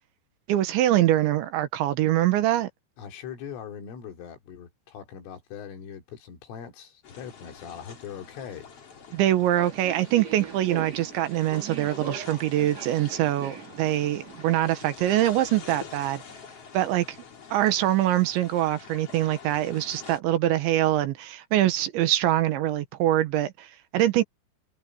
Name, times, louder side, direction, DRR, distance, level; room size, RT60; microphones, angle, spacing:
voice 1, 0.5-2.7 9.1-16.2 16.7-17.2 17.5-24.2, right 13 dB, 75° right, 3.4 m, -24 dB
voice 2, 3.0-8.7, left 8 dB, 85° left, 5.9 m, -41 dB
sound 1, 7.0-20.2, left 6 dB, 35° left, 3.1 m, -46 dB
Subway metro underground, 9.5-14.6, right 6 dB, 40° right, 3.8 m, -40 dB
omnidirectional pair, 5.6 m